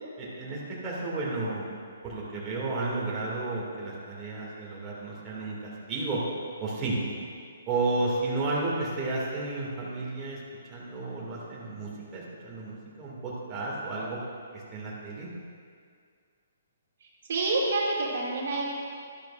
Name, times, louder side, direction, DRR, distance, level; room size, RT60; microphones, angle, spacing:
voice 1, 0.2-1.7 2.0-6.2 6.6-7.0 7.7-14.2 14.5-15.3, right 2 dB, 20° right, -6 dB, 2.3 m, -32 dB
voice 2, 17.3-18.8, right 2 dB, 60° right, -5 dB, 2.4 m, -28 dB
12.5 x 11.5 x 2.5 m, 2.2 s
figure-of-eight pair, 130°, 0 cm